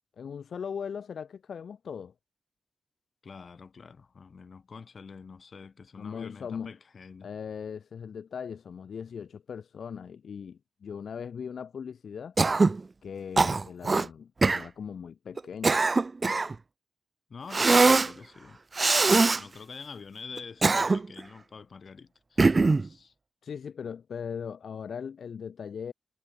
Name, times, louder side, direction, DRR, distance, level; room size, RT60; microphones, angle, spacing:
voice 1, 0.2-2.1 6.0-6.7 7.2-12.4 13.0-15.8 23.4-25.9, left 7 dB, 80° left, 1.7 m, -39 dB
voice 2, 3.2-7.3 17.3-18.6 19.3-23.1, left 5 dB, 60° left, 6.3 m, -46 dB
Cough, 12.4-12.8 13.4-14.1 14.4-14.6 15.4-16.5 17.5-18.1 18.8-19.4 20.4-21.2 22.4-22.9, right 3 dB, 40° right, 0.8 m, -22 dB
cardioid pair, 60°, 0 cm